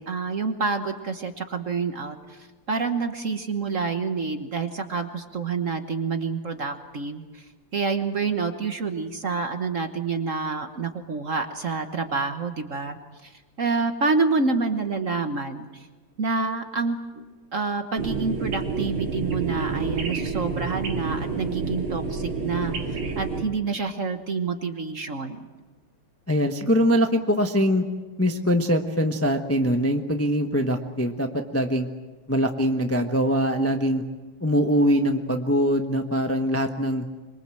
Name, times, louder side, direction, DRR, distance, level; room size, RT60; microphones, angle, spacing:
voice 1, 0.0-2.4 2.7-7.4 7.7-13.3 13.6-15.9 16.2-17.2 17.5-25.4, right 4 dB, 45° right, 7 dB, 1.4 m, -28 dB
sound 1, 18.0-23.4, right 4 dB, 70° right, 2.9 m, -29 dB
voice 2, 26.3-27.8 28.2-31.9 32.3-34.0 34.4-37.0, equal, 10° left, 5 dB, 0.8 m, -23 dB
25.5 x 23.0 x 7.7 m, 1.2 s
omnidirectional pair, 2.3 m